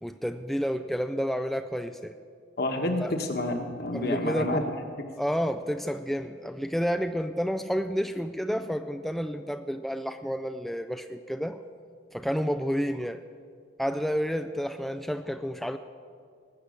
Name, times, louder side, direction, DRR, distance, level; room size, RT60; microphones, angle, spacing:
voice 1, 0.0-2.1 3.0-3.1 3.9-4.7 5.2-11.6 12.1-13.2 13.8-15.8, equal, ahead, 8 dB, 0.3 m, -30 dB
voice 2, 2.6-4.6, left 1 dB, 55° left, 4 dB, 1.4 m, -29 dB
19.0 x 8.3 x 6.5 m, 2.2 s
head